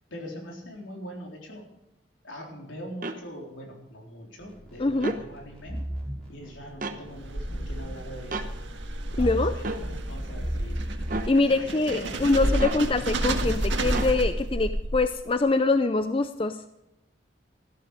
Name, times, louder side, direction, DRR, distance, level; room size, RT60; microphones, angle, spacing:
voice 1, 0.1-1.7 2.2-5.8 6.3-8.6 9.2-10.8 11.3-12.9, equal, 80° left, 0 dB, 3.9 m, -42 dB
sound 1, 3.0-3.2 4.9-5.2 6.8-7.0 8.3-8.5 9.6-9.8 11.1-11.3 12.6-12.8 13.9-14.2, right 2 dB, 45° right, 1.0 m, -32 dB
sound 2, 4.4-11.2, right 1 dB, 5° left, 5.1 m, -37 dB
voice 2, 4.8-5.1 9.2-9.5 11.3-16.6, left 3 dB, 25° left, 10 dB, 0.5 m, -24 dB
sound 3, 7.0-15.3, right 1 dB, 70° right, 1.7 m, -30 dB
14.5 x 12.5 x 5.0 m, 0.90 s
head